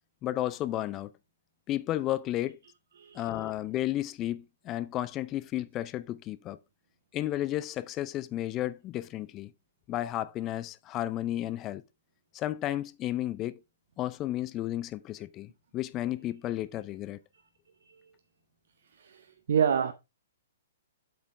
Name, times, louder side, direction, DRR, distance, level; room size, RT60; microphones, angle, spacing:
voice 1, 0.2-1.1 1.7-2.6 3.1-6.6 7.1-9.5 9.9-11.8 12.3-13.6 14.0-17.2, left 14 dB, 25° left, 0.4 m, -33 dB
voice 2, 3.0-3.5 17.8-18.0 18.9-19.9, right 8 dB, 55° right, 0.7 m, -29 dB
7.9 x 7.3 x 3.4 m
figure-of-eight pair, 115°, 0 cm